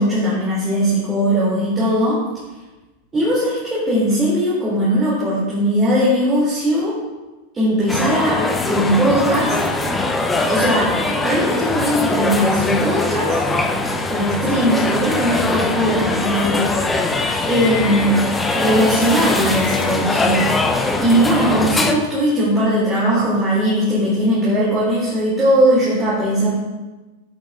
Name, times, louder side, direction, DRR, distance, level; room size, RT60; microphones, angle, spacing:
voice 1, 0.0-2.2 3.1-7.0 7.5-8.4 8.7-9.5 10.5-10.9 11.2-13.3 14.1-16.6 17.4-18.3 18.5-20.5 21.0-26.5, equal, 20° right, -9 dB, 2.8 m, -19 dB
sound 1, 7.9-21.9, left 2 dB, 10° left, 0.7 m, -21 dB
8.8 x 8.2 x 2.5 m, 1.2 s
figure-of-eight pair, 90°, 0 cm